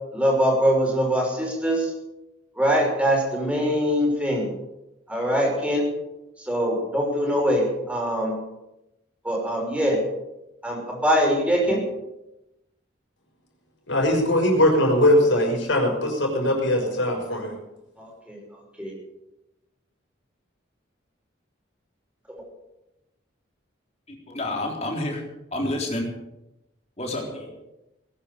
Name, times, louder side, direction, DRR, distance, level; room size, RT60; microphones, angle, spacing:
voice 1, 0.1-1.9 2.6-4.5 5.1-5.9 6.5-8.4 9.2-10.0 10.6-11.8 18.0-18.4 18.8-18.9, equal, 5° right, -1 dB, 5.8 m, -23 dB
voice 2, 13.9-17.6, left 1 dB, 80° left, 1 dB, 6.0 m, -20 dB
voice 3, 24.1-25.2 25.5-26.1 27.0-27.5, left 1 dB, 35° left, 0 dB, 3.9 m, -29 dB
20.0 x 10.5 x 6.9 m, 0.93 s
head